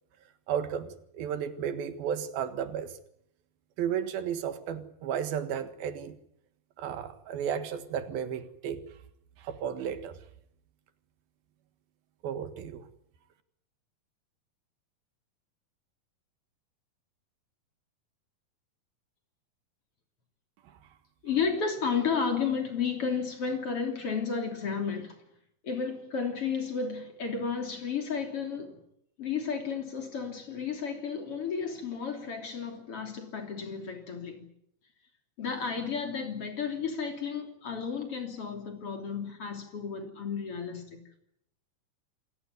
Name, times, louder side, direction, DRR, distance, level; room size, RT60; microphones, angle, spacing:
voice 1, 0.5-3.0 3.8-6.2 6.8-8.8 9.4-10.2 12.2-12.9, right 8 dB, 85° right, 3.5 m, -33 dB
voice 2, 21.2-25.2 25.6-28.7 29.2-34.5 35.4-41.0, left 6 dB, 40° left, 4.0 m, -32 dB
28.0 x 17.0 x 9.7 m
omnidirectional pair, 4.1 m